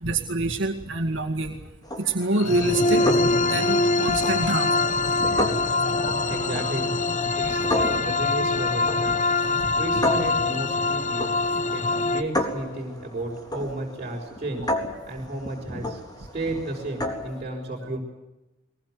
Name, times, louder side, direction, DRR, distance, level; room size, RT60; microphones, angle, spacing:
voice 1, 0.0-1.6 2.0-3.1 3.3-4.8 6.0-6.7 7.2-7.8 9.6-9.7 14.6-14.7, right 2 dB, 65° right, 2 dB, 2.1 m, -27 dB
sound 1, 1.8-17.4, left 1 dB, 20° left, 3.8 m, -33 dB
sound 2, 2.4-12.2, left 3 dB, 40° left, 1.0 m, -24 dB
voice 2, 6.3-6.9 7.3-9.1 9.8-11.3 11.7-14.7 15.1-18.0, right 2 dB, 35° right, -4 dB, 5.8 m, -33 dB
22.5 x 21.5 x 7.8 m, 1.0 s
head